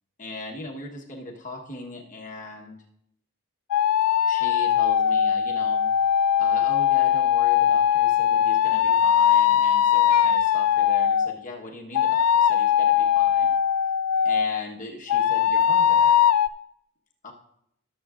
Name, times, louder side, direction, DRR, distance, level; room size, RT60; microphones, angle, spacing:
voice 1, 0.2-2.8 4.2-5.9 6.2-13.5 14.2-16.1 17.2-17.3, left 2 dB, 35° left, 0 dB, 1.2 m, -39 dB
sound 1, 3.7-11.3 11.9-14.6 15.1-16.5, left 9 dB, 80° left, 0.3 m, -20 dB
18.0 x 7.2 x 2.5 m, 0.76 s
head